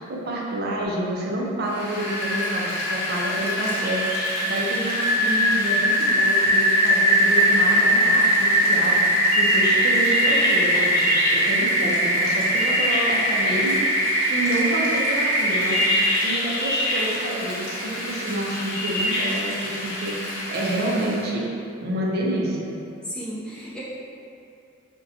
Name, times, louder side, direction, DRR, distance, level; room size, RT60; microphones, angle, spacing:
voice 1, 0.1-4.0 4.4-9.0 9.4-15.9 16.2-21.5 21.8-22.7, right 1 dB, 55° right, -3 dB, 0.5 m, -28 dB
Rain, 1.7-21.2, equal, 45° left, 0.8 m, -22 dB
voice 2, 23.0-23.8, equal, 5° left, -10 dB, 0.5 m, -34 dB
3.8 x 2.2 x 2.7 m, 2.5 s
head